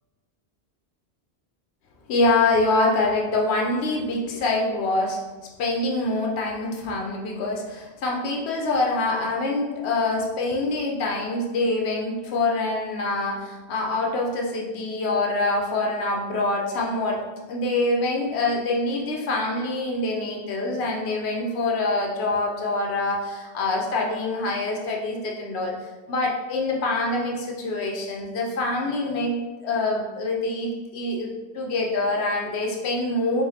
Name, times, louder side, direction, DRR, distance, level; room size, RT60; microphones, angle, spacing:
voice 1, 2.1-5.2 5.6-33.4, left 2 dB, 90° left, -1 dB, 0.9 m, -25 dB
4.8 x 2.5 x 2.7 m, 1.2 s
omnidirectional pair, 1.1 m